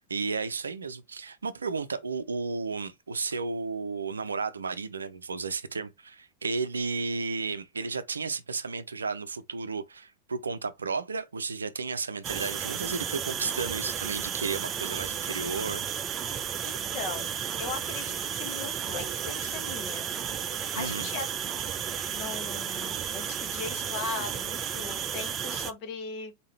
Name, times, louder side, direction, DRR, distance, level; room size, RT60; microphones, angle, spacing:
voice 1, 0.0-15.9 20.8-21.1, right 4 dB, 75° right, 0.5 m, -33 dB
sound 1, 12.2-25.7, right 8 dB, 25° right, 0.5 m, -33 dB
voice 2, 16.6-20.1 20.7-21.3 22.1-26.3, left 4 dB, 40° left, 1.5 m, -38 dB
4.1 x 3.7 x 3.2 m
figure-of-eight pair, 90°, 0 cm